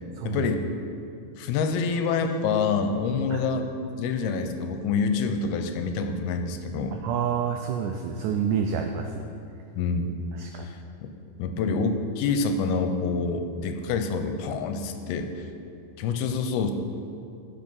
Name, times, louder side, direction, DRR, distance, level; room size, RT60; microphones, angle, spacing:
voice 1, 0.2-0.6 1.4-3.7 4.0-7.0 9.8-10.2 10.7-10.8 11.4-15.5 16.0-16.7, left 4 dB, 85° left, 7 dB, 2.6 m, -27 dB
voice 2, 7.0-9.2 10.3-10.7, right 7 dB, 85° right, 4 dB, 1.8 m, -28 dB
14.5 x 5.3 x 5.5 m, 2.5 s
omnidirectional pair, 4.3 m